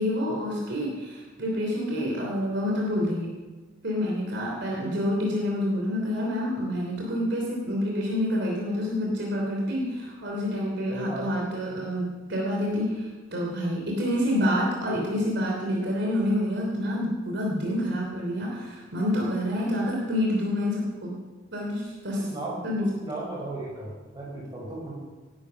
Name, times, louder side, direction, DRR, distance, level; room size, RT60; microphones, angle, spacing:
voice 1, 0.0-3.3 3.8-21.1 21.5-22.3 22.6-22.9, left 1 dB, 60° right, -2 dB, 3.2 m, -28 dB
voice 2, 10.9-11.3 22.2-24.9, right 2 dB, 20° right, -4 dB, 6.4 m, -35 dB
18.0 x 11.5 x 5.8 m, 1.3 s
head